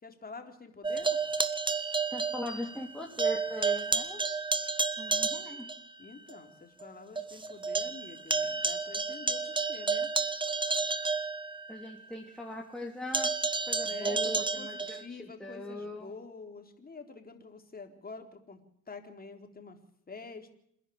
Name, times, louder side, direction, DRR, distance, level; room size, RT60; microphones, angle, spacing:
voice 1, 0.0-1.1 6.0-10.1 13.8-18.6 18.9-19.8 20.1-20.5, left 4 dB, 30° left, 5 dB, 4.0 m, -47 dB
sound 1, 0.8-2.9 3.2-5.8 6.3-6.4 6.8-6.9 7.2-11.9 13.1-15.1, right 4 dB, 15° right, 1.5 m, -31 dB
voice 2, 2.1-4.2 5.0-5.7 11.7-13.4 13.7-16.1, left 1 dB, ahead, -1 dB, 3.4 m, -40 dB
28.0 x 11.0 x 8.9 m, 0.71 s
cardioid pair, 90°, 30 cm